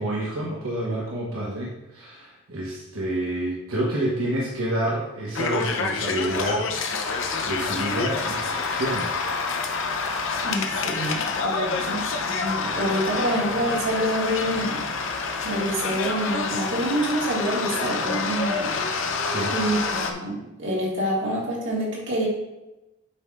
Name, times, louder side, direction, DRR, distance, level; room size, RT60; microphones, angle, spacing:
voice 1, 0.0-6.6 6.9-9.2 19.2-19.5, right 1 dB, 85° right, -5 dB, 1.2 m, -29 dB
sound 1, 5.4-20.1, left 4 dB, 70° left, 0.7 m, -27 dB
voice 2, 10.4-14.9 15.4-18.8 19.5-22.3, right 1 dB, 60° right, -4 dB, 2.0 m, -27 dB
8.0 x 5.6 x 2.5 m, 0.97 s
head